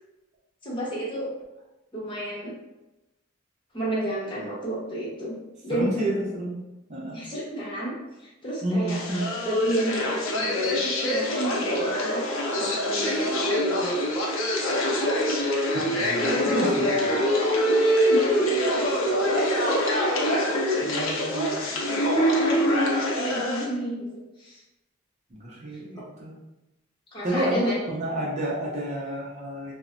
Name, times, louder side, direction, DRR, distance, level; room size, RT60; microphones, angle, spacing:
voice 1, 0.6-1.3 1.9-2.5 3.7-5.3 5.6-5.9 7.1-7.9 8.4-9.0 9.4-12.2 12.5-13.9 16.2-16.8 17.7-19.0 19.3-24.0 24.4-24.6 25.9-26.0 27.1-27.8, equal, 25° left, -7 dB, 0.9 m, -30 dB
voice 2, 5.7-6.6 6.9-7.2 8.6-9.3 15.7-16.9 20.9-21.6 25.3-26.3 27.2-29.7, right 1 dB, 35° right, -5 dB, 0.6 m, -30 dB
sound 1, 8.9-23.6, equal, 70° left, 0.6 m, -25 dB
3.0 x 2.1 x 2.5 m, 0.99 s
head